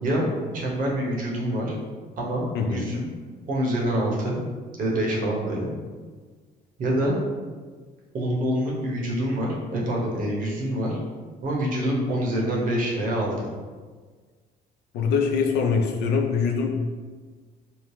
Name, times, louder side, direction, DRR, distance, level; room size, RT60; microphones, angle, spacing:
voice 1, 0.0-1.8 2.2-3.1 3.5-4.4 4.8-5.7 6.8-7.2 8.1-11.0 11.4-13.5, right 1 dB, 55° right, -3 dB, 0.8 m, -26 dB
voice 2, 14.9-16.8, left 5 dB, 80° left, 3 dB, 0.4 m, -23 dB
2.8 x 2.0 x 3.1 m, 1.5 s
cardioid pair, 110°, 17 cm